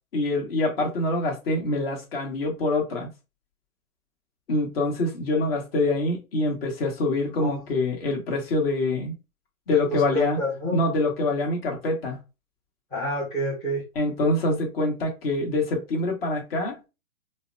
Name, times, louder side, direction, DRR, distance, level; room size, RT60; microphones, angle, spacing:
voice 1, 0.1-3.1 4.5-9.1 9.7-10.4 10.7-12.2 13.9-16.8, left 2 dB, 40° left, 1.5 m, -25 dB
voice 2, 9.7-10.8 12.9-13.8, equal, 10° left, 0.6 m, -28 dB
4.7 x 2.2 x 2.7 m
hypercardioid pair, 140°, 44 cm